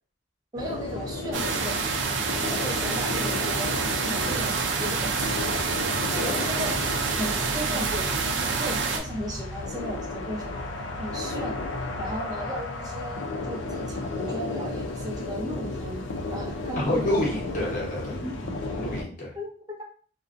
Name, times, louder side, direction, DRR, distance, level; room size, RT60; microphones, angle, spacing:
voice 1, 0.5-1.9 2.4-3.7 4.0-5.4 6.0-6.8 7.2-8.3 8.6-10.5 11.0-11.6 12.0-16.1 16.3-17.2 18.1-18.5 19.4-19.8, equal, 20° right, -1 dB, 0.5 m, -36 dB
sound 1, 0.6-19.0, left 2 dB, 85° left, 0.4 m, -33 dB
sound 2, 1.3-9.0, right 5 dB, 80° right, 0.4 m, -27 dB
voice 2, 6.1-6.5 16.8-18.2 18.7-19.3, left 1 dB, 45° left, -3 dB, 0.8 m, -28 dB
2.5 x 2.1 x 2.4 m, 0.43 s
head